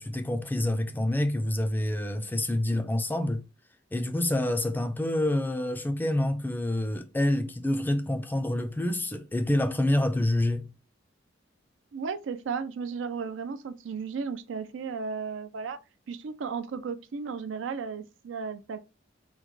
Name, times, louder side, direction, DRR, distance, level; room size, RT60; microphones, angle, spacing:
voice 1, 0.0-3.5 3.9-10.7, left 1 dB, 10° left, 0.3 m, -27 dB
voice 2, 11.9-15.8 16.1-18.8, right 5 dB, 85° right, 0.4 m, -34 dB
3.7 x 2.1 x 3.0 m
head